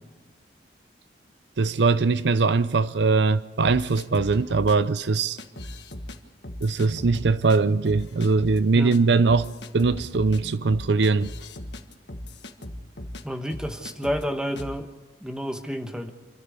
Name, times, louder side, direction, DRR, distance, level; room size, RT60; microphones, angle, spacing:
voice 1, 1.6-5.4 6.6-9.5 9.7-11.3, right 4 dB, 70° right, 0.6 m, -21 dB
sound 1, 3.6-4.7 5.4-6.2 6.4-7.6 7.8-8.6 8.9-9.0 9.3-13.2 13.5-14.2 14.6-14.8, left 1 dB, 70° left, 1.5 m, -38 dB
voice 2, 13.2-14.9 15.2-16.1, equal, 5° right, 1.1 m, -30 dB
27.0 x 13.0 x 8.4 m
head